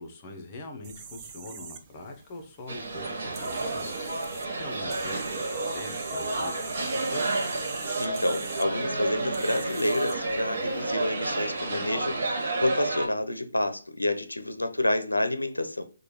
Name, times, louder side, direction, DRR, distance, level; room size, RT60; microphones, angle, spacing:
voice 1, 0.0-3.9 4.3-7.3, left 2 dB, 30° left, 0.7 m, -42 dB
sound 1, 0.8-10.8, right 6 dB, 25° right, 0.5 m, -45 dB
sound 2, 2.7-13.1, right 2 dB, 50° right, 1.3 m, -31 dB
voice 2, 8.0-15.8, left 1 dB, 90° left, 0.5 m, -29 dB
4.9 x 2.2 x 3.0 m
figure-of-eight pair, 140°, 0 cm